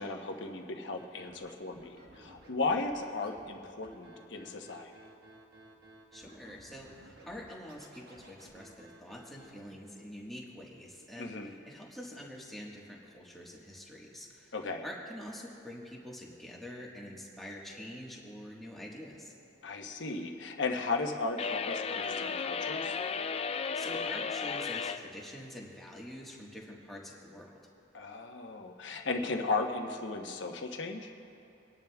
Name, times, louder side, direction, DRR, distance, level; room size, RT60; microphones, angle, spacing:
voice 1, 0.0-4.9 11.2-11.5 14.5-14.8 19.6-22.9 27.9-31.1, left 3 dB, 70° left, 3 dB, 1.0 m, -35 dB
Scratching (performance technique), 1.0-9.5, right 1 dB, 55° right, 1.3 m, -56 dB
voice 2, 6.1-14.5 14.8-19.3 23.7-27.5, left 1 dB, ahead, -4 dB, 1.5 m, -46 dB
sound 1, 21.4-25.0, left 5 dB, 30° left, 0.3 m, -34 dB
24.0 x 10.5 x 2.3 m, 2.9 s
head